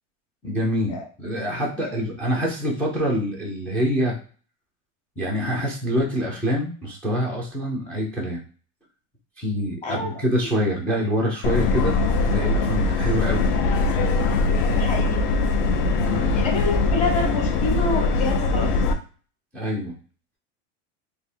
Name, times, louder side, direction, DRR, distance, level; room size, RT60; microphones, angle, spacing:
voice 1, 0.4-4.2 5.2-8.4 9.4-12.0 12.2-13.5 16.1-16.4 19.5-19.9, equal, 5° left, -3 dB, 0.3 m, -25 dB
voice 2, 9.8-10.5 14.7-15.3 16.3-18.8, left 3 dB, 20° left, 0 dB, 1.0 m, -28 dB
Subway metro underground, 11.4-18.9, left 3 dB, 45° left, 0.7 m, -21 dB
3.3 x 2.7 x 4.2 m, 0.39 s
supercardioid pair, 175°, 36 cm